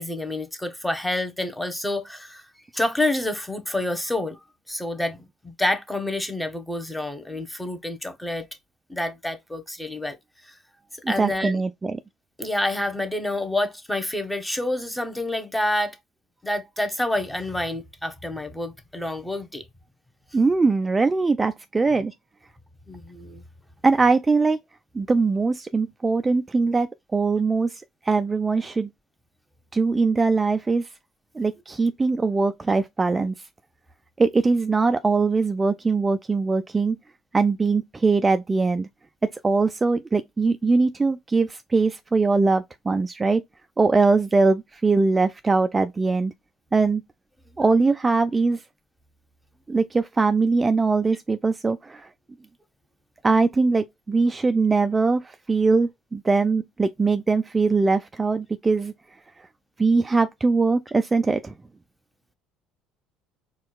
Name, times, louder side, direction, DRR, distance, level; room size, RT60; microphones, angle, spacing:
voice 1, 0.0-2.4 2.7-4.4 4.7-5.2 5.4-8.5 8.9-10.2 11.1-11.6 12.4-16.0 16.4-19.6 22.9-23.4, left 1 dB, 5° left, 0.9 m, -28 dB
voice 2, 11.0-12.0 20.3-22.1 23.8-24.6 24.9-28.9 29.7-30.9 31.4-33.3 34.2-37.0 37.3-38.9 39.2-43.4 43.8-46.3 46.7-47.0 47.6-48.6 49.7-52.1 53.2-58.9 59.8-61.5, right 4 dB, 25° right, 0.3 m, -21 dB
4.4 x 2.3 x 2.2 m
hypercardioid pair, 65°, 0 cm